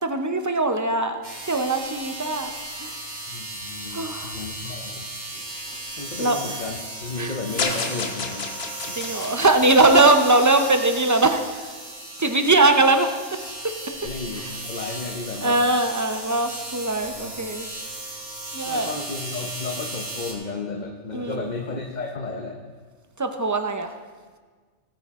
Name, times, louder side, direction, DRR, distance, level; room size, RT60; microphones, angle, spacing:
voice 1, 0.0-3.0 3.9-4.4 6.2-6.4 7.2-7.4 8.9-11.5 12.2-13.1 14.4-14.5 15.4-17.7 18.5-18.9 21.1-21.5 23.2-23.9, right 2 dB, 20° right, 6 dB, 0.6 m, -21 dB
sound 1, 1.2-20.3, right 2 dB, 35° right, 1.9 m, -36 dB
voice 2, 3.3-5.0 6.0-8.5 8.9-9.0 14.0-15.6 17.1-17.5 18.6-22.6, left 3 dB, 40° left, 1 dB, 1.0 m, -33 dB
sound 2, 7.6-10.9, left 4 dB, 55° left, 1.3 m, -31 dB
18.0 x 9.0 x 3.7 m, 1.5 s
omnidirectional pair, 1.3 m